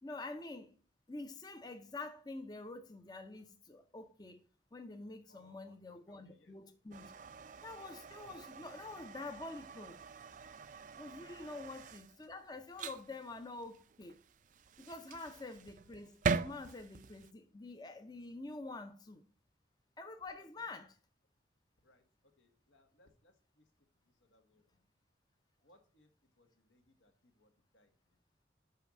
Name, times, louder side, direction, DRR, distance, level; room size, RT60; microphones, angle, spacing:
voice 1, 0.0-0.8 1.1-4.4 4.7-7.1 7.6-10.0 11.0-14.2 14.8-19.2 20.0-20.9, left 2 dB, 20° left, 0.5 m, -47 dB
voice 2, 5.3-6.8 11.4-11.6 15.3-15.6 20.5-20.9 21.8-24.9 25.6-28.2, left 1 dB, 85° left, 1.7 m, -70 dB
sound 1, 6.9-17.3, right 5 dB, 45° right, 0.4 m, -43 dB
5.7 x 5.5 x 6.1 m
head